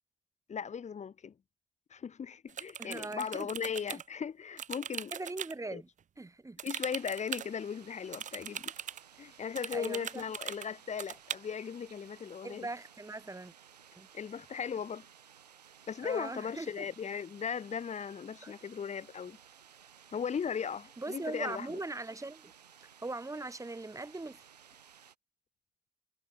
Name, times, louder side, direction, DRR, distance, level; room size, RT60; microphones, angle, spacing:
voice 1, 0.5-1.3 1.9-5.1 5.7-5.8 6.6-8.7 9.2-12.7 14.1-15.0 15.9-19.4 20.1-21.8, left 7 dB, 35° left, 1.4 m, -37 dB
sound 1, 2.5-4.0 4.6-5.5 6.6-7.5 8.1-9.0 9.6-10.7 11.0-11.4, right 9 dB, 40° right, 0.8 m, -40 dB
voice 2, 2.8-3.5 3.9-4.0 5.1-5.9 6.2-6.6 9.7-10.2 12.4-13.5 14.0-14.1 16.0-16.8 18.4-18.5 21.0-22.5 23.0-24.4, right 2 dB, 15° right, 3.1 m, -40 dB
sound 2, 6.8-25.2, right 8 dB, 85° right, 4.3 m, -58 dB
figure-of-eight pair, 50°, 20 cm